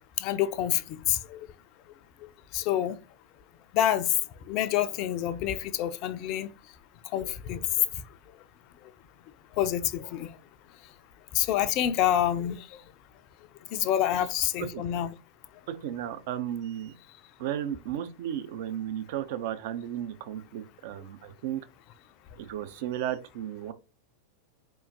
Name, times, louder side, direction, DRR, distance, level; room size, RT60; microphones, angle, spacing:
voice 1, 0.2-1.4 2.5-3.0 3.7-4.1 4.5-6.5 7.1-7.6 9.6-10.3 11.3-12.6 13.7-15.1, left 11 dB, 40° left, 0.4 m, -27 dB
voice 2, 15.7-16.9 17.4-21.6 22.4-23.7, right 11 dB, 50° right, 0.5 m, -34 dB
4.3 x 3.6 x 2.7 m
figure-of-eight pair, 90°, 0 cm